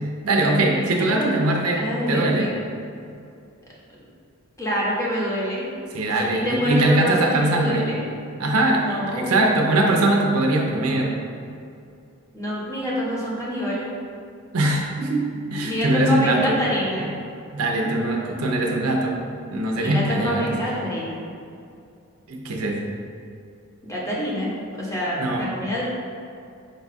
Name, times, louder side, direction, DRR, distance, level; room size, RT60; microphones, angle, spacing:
voice 1, 0.2-2.5 5.9-7.9 8.4-11.1 14.5-16.6 17.0-17.1 17.5-19.2 19.5-20.5 22.3-22.8 25.2-25.5, right 1 dB, 70° right, 0 dB, 0.6 m, -22 dB
voice 2, 1.0-1.4 1.7-2.6 3.9-4.0 4.6-5.7 6.2-8.0 8.7-9.5 12.3-13.9 15.6-17.2 19.8-21.2 23.8-24.5 24.8-25.8, equal, 15° left, -6 dB, 0.8 m, -26 dB
5.3 x 2.3 x 4.1 m, 2.5 s
head